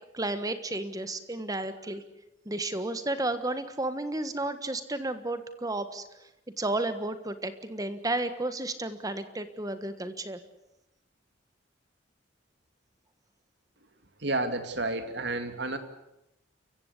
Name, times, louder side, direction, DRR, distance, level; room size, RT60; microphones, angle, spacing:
voice 1, 0.1-2.0 2.4-6.0 6.6-10.4, right 2 dB, 20° right, 11 dB, 1.4 m, -32 dB
voice 2, 14.2-15.8, right 2 dB, 60° right, 8 dB, 2.4 m, -30 dB
29.0 x 16.0 x 8.3 m, 0.88 s
head